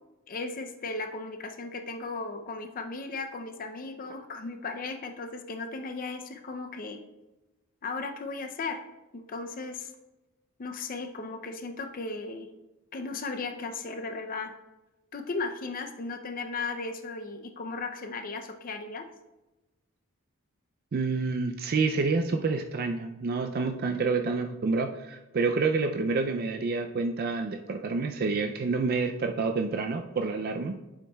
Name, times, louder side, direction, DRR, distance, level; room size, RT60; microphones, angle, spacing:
voice 1, 0.3-7.0 7.8-8.8 9.1-9.9 10.6-12.5 12.9-14.5 15.1-19.0, left 3 dB, 40° left, 6 dB, 0.5 m, -36 dB
voice 2, 20.9-30.8, right 4 dB, 45° right, 5 dB, 0.4 m, -28 dB
9.2 x 7.2 x 2.3 m, 1.1 s
head